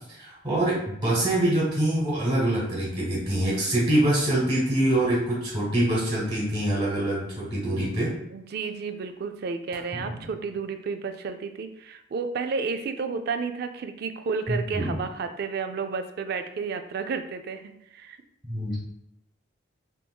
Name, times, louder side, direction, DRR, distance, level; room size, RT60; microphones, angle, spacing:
voice 1, 0.2-8.1 14.5-14.9 18.4-18.8, right 1 dB, 25° right, -6 dB, 1.4 m, -25 dB
voice 2, 8.3-18.2, right 5 dB, 55° right, 8 dB, 0.3 m, -32 dB
3.5 x 2.9 x 2.3 m, 0.79 s
head